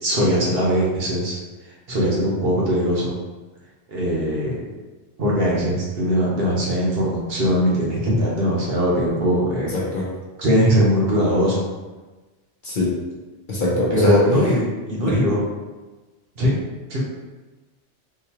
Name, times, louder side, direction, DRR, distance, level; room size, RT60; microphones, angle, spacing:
voice 1, 0.0-1.4 1.9-3.1 3.9-4.5 5.2-9.7 10.4-11.7 13.9-15.4 16.4-16.5 16.9-17.0, equal, 60° right, -4 dB, 1.1 m, -20 dB
voice 2, 9.7-10.1 12.6-12.9 13.5-14.2 15.0-15.2, left 1 dB, 50° left, -5 dB, 0.7 m, -22 dB
3.9 x 2.5 x 2.8 m, 1.2 s
omnidirectional pair, 1.2 m